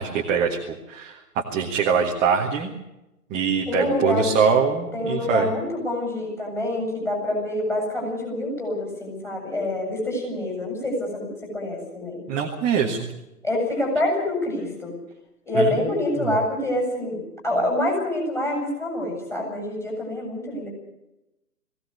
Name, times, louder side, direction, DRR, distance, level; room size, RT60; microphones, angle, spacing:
voice 1, 0.0-2.7 3.3-5.5 12.3-13.1 15.5-15.9 16.2-16.4, right 6 dB, 15° right, 1 dB, 1.6 m, -23 dB
voice 2, 3.7-4.4 4.9-12.2 13.4-15.0 15.5-20.7, left 1 dB, 5° left, 1 dB, 7.8 m, -26 dB
21.0 x 17.0 x 8.2 m, 0.92 s
figure-of-eight pair, 140°, 46 cm